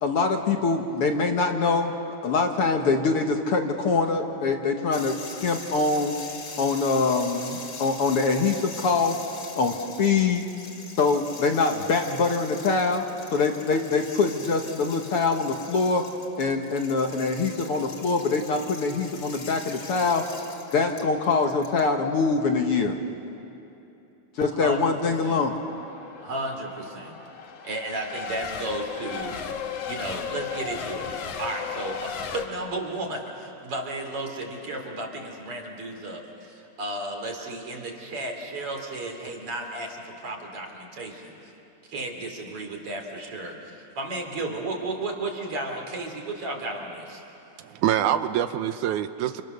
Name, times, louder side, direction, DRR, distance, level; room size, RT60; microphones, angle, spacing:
voice 1, 0.0-6.1 6.6-9.2 9.6-10.4 11.0-13.0 13.3-16.0 16.4-20.2 20.7-23.0 24.4-25.5, left 4 dB, 55° left, 3 dB, 1.9 m, -24 dB
sound 1, 4.9-21.8, left 3 dB, 40° left, 2.9 m, -42 dB
voice 2, 24.5-25.4 26.2-27.2 27.6-29.4 29.9-31.1 31.4-41.5 41.9-47.2, right 2 dB, 50° right, 2 dB, 3.8 m, -34 dB
Race car auto racing / Accelerating revving vroom / Mechanisms, 24.6-32.5, left 6 dB, 80° left, 2.9 m, -36 dB
voice 3, 47.6-49.4, right 11 dB, 85° right, 10 dB, 2.3 m, -25 dB
29.5 x 29.0 x 6.7 m, 2.8 s
omnidirectional pair, 3.4 m